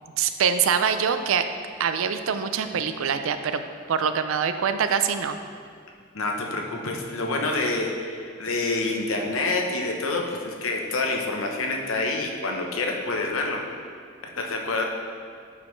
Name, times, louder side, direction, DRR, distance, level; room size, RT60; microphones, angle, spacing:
voice 1, 0.2-1.4 1.8-3.6 3.9-5.4, right 7 dB, 80° right, 9 dB, 0.4 m, -24 dB
voice 2, 6.1-13.6 14.4-14.8, left 3 dB, 80° left, 1 dB, 0.9 m, -27 dB
9.4 x 5.3 x 3.1 m, 2.2 s
head